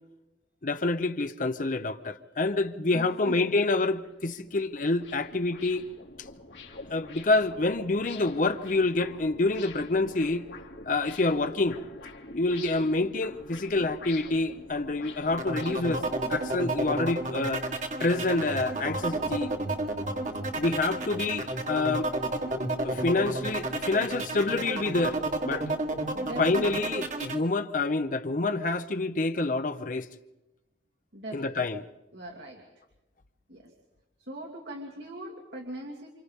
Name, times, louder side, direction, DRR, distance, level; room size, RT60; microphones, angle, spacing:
voice 1, 0.6-5.8 6.9-10.4 10.9-11.8 12.3-16.0 16.3-17.6 18.0-19.5 20.6-22.1 22.8-25.7 26.4-30.1 31.3-31.8, left 2 dB, 45° left, 0.7 m, -27 dB
voice 2, 2.7-3.6 26.1-27.0 31.1-31.8 32.1-32.8 33.5-33.7 34.2-36.1, right 1 dB, 85° right, 2.8 m, -41 dB
sound 1, 4.0-16.1, left 3 dB, 85° left, 2.4 m, -46 dB
sound 2, 15.4-27.4, right 2 dB, 45° right, 1.5 m, -31 dB
28.5 x 27.0 x 3.6 m
head